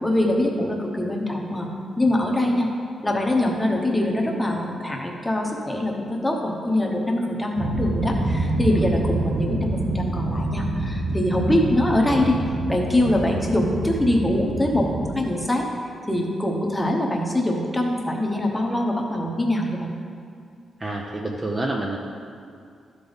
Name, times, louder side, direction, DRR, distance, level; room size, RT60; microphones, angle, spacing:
voice 1, 0.0-1.7 2.0-2.7 3.0-12.4 12.7-14.9 15.1-15.7 16.1-19.9, left 1 dB, 5° left, 0 dB, 0.9 m, -23 dB
sound 1, 7.6-15.2, right 2 dB, 65° right, 1.3 m, -27 dB
voice 2, 20.8-22.0, right 2 dB, 20° right, -1 dB, 0.5 m, -28 dB
12.5 x 5.2 x 4.0 m, 2.3 s
wide cardioid pair, 155°, 0 cm